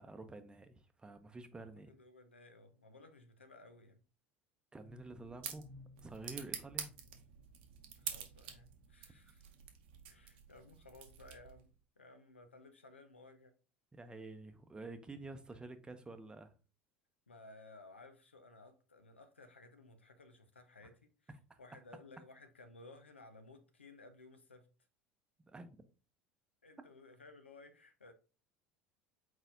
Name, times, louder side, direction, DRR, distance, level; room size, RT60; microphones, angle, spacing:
voice 1, 0.0-1.9 4.7-5.7 6.0-6.9 13.9-16.5 21.5-21.6 25.5-25.8, right 2 dB, 15° right, 0.7 m, -49 dB
voice 2, 1.6-4.0 8.0-9.6 10.1-11.7 12.0-13.5 17.3-21.3 21.6-24.7 26.6-28.1, left 2 dB, 90° left, 0.6 m, -58 dB
sound 1, 4.8-11.7, right 8 dB, 70° right, 0.8 m, -48 dB
4.5 x 4.0 x 2.6 m
figure-of-eight pair, 70°, 6 cm